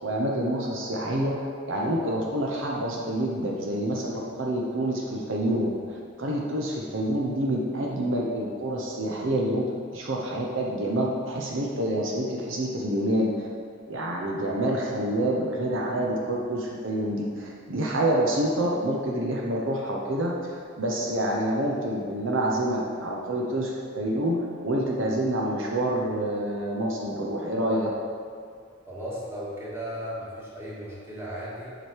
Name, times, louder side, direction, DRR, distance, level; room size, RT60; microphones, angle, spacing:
voice 1, 0.0-5.8 6.2-9.6 9.9-13.3 13.9-20.3 20.8-27.9, right 1 dB, 70° right, -2 dB, 0.9 m, -27 dB
voice 2, 28.9-31.7, equal, 15° right, -8 dB, 2.0 m, -36 dB
7.7 x 5.0 x 4.6 m, 2.2 s
head